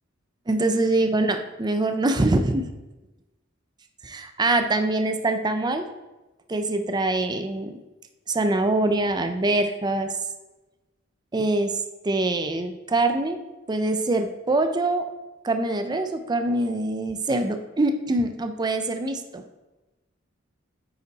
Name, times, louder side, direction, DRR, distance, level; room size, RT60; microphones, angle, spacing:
voice 1, 0.5-2.7 4.0-5.9 6.5-7.7 8.3-10.1 11.3-11.7 12.0-13.4 13.7-15.1 15.4-19.4, right 2 dB, 20° right, 7 dB, 0.5 m, -24 dB
9.1 x 5.5 x 4.0 m, 1.1 s
head